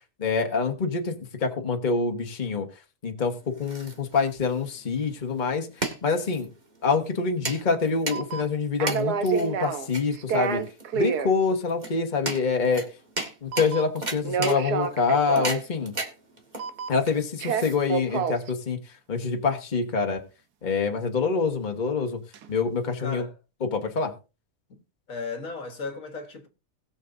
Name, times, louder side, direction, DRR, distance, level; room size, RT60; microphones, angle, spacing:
voice 1, 0.2-2.7 3.0-6.5 6.8-10.6 10.9-12.8 13.4-15.9 16.9-20.2 20.6-22.2 22.5-23.2 23.6-24.1, left 4 dB, 30° left, 1.4 m, -26 dB
sound 1, 3.2-18.2, right 2 dB, 30° right, 2.0 m, -36 dB
sound 2, 7.7-7.8 8.1-8.6 8.8-9.9 10.1-11.3 13.5-14.0 14.2-15.6 16.6-17.0 17.4-18.5 22.3-22.5, right 6 dB, 85° right, 1.5 m, -28 dB
voice 2, 23.0-23.3 24.7-24.8 25.1-26.5, left 3 dB, 60° left, 1.8 m, -35 dB
20.0 x 7.0 x 2.6 m
omnidirectional pair, 1.6 m